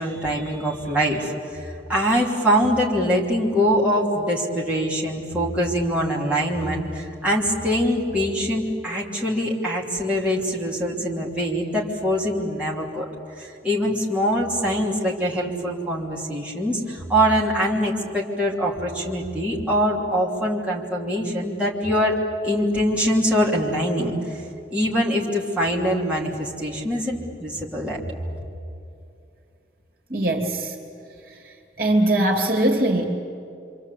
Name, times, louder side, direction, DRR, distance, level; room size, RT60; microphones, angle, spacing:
voice 1, 0.0-13.0 13.4-22.2 22.4-24.4 24.7-28.1, equal, 5° right, -4 dB, 3.1 m, -23 dB
voice 2, 30.1-30.7 31.8-33.1, right 1 dB, 50° right, 2 dB, 2.8 m, -21 dB
27.0 x 26.0 x 8.4 m, 2.6 s
head